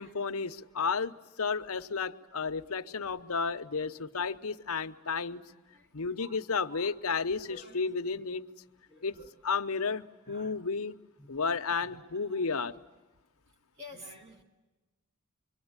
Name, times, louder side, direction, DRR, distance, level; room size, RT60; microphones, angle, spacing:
voice 1, 0.0-5.4 5.9-8.4 9.0-9.2 9.4-11.0 11.3-12.8, left 5 dB, 80° left, 9 dB, 0.9 m, -32 dB
voice 2, 6.2-7.0 7.5-8.2 8.9-9.3 10.3-10.5 11.2-12.4 13.8-14.4, left 1 dB, 30° right, 4 dB, 3.4 m, -52 dB
26.0 x 24.0 x 9.7 m, 1.1 s
head